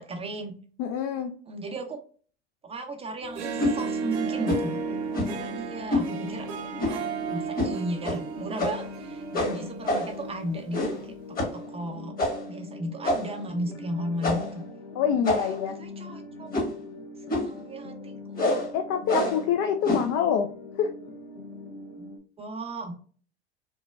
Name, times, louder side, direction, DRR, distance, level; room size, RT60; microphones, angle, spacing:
voice 1, 0.1-0.5 1.5-2.0 2.6-6.5 6.9-11.1 11.4-12.1 12.5-14.6 15.8-16.5 17.3-18.6 22.0-22.1 22.4-22.9, right 1 dB, 15° right, 3 dB, 0.6 m, -35 dB
voice 2, 0.8-1.3 14.9-15.8 18.7-20.5 20.8-20.9, left 8 dB, 45° left, 6 dB, 0.4 m, -26 dB
Harp, 3.2-10.7, right 6 dB, 65° right, 0.7 m, -34 dB
sound 1, 3.6-3.8 4.4-4.7 5.1-5.4 5.9-6.1 6.8-7.1 7.5-7.7 8.0-8.2 8.6-8.9 9.3-10.2 10.7-11.0 11.4-11.6 12.2-12.5 13.0-13.4 14.2-14.6 15.2-15.7 16.5-16.8 17.3-17.6 18.3-18.7 19.1-19.4 19.8-20.1, left 1 dB, 25° left, 1.2 m, -27 dB
sound 2, 3.8-22.2, left 3 dB, 70° left, 0.8 m, -42 dB
3.1 x 2.1 x 2.2 m, 0.43 s
hypercardioid pair, 80°, 34 cm